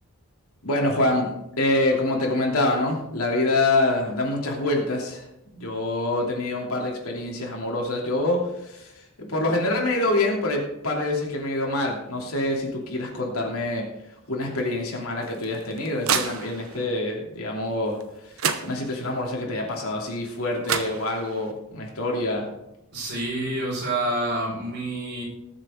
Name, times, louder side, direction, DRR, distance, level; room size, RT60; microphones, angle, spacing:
voice 1, 0.6-5.3 5.5-13.8 14.3-22.5, left 2 dB, 70° left, -1 dB, 2.9 m, -26 dB
sound 1, 15.2-16.9 18.0-18.1 18.4-19.2 20.3-20.4 20.6-21.5, right 7 dB, 65° right, 1.0 m, -29 dB
voice 2, 22.9-25.2, right 1 dB, 50° right, -4 dB, 5.3 m, -28 dB
19.5 x 7.4 x 3.7 m, 0.87 s
head